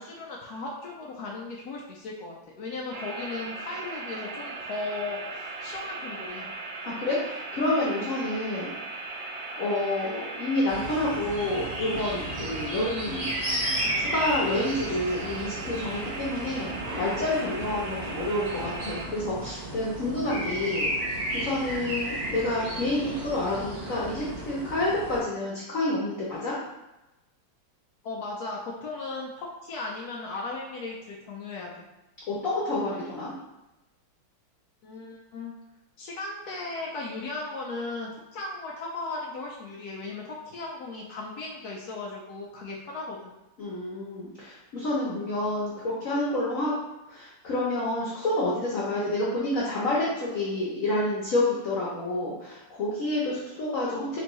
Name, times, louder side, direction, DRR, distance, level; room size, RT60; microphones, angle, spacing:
voice 1, 0.0-6.5 28.0-31.7 34.8-35.5 36.0-43.3, left 3 dB, 90° left, -2 dB, 0.8 m, -36 dB
sound 1, 2.9-19.0, right 3 dB, 70° right, 1.2 m, -38 dB
voice 2, 6.9-8.7 9.6-13.3 13.9-20.9 21.3-26.5 32.3-33.3 43.6-46.7 47.1-54.2, left 1 dB, 60° left, -6 dB, 0.9 m, -28 dB
sound 2, 10.7-25.2, right 1 dB, 55° right, 1.3 m, -34 dB
4.3 x 2.6 x 3.0 m, 0.99 s
omnidirectional pair, 2.2 m